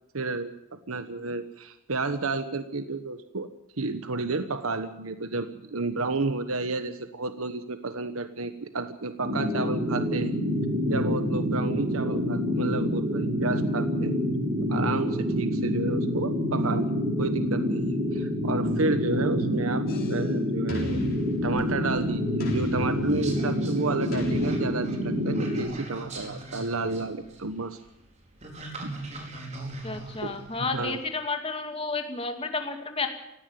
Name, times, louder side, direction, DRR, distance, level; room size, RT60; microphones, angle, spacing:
voice 1, 0.1-0.5 0.9-3.5 3.8-10.4 10.8-14.1 14.7-21.0 21.4-27.8 28.8-28.9 30.2-30.4 30.7-31.0, right 3 dB, 85° right, 10 dB, 1.2 m, -31 dB
sound 1, 9.2-25.6, equal, 60° right, 5.2 m, -27 dB
sound 2, 19.9-20.3 20.7-22.0 22.4-23.5 24.1-25.2, equal, 45° left, 6.5 m, -39 dB
sound 3, 21.4-31.1, right 2 dB, 35° right, 4.8 m, -42 dB
voice 2, 29.8-33.1, left 4 dB, 25° left, 5 dB, 2.4 m, -31 dB
18.5 x 16.0 x 8.7 m, 0.90 s
head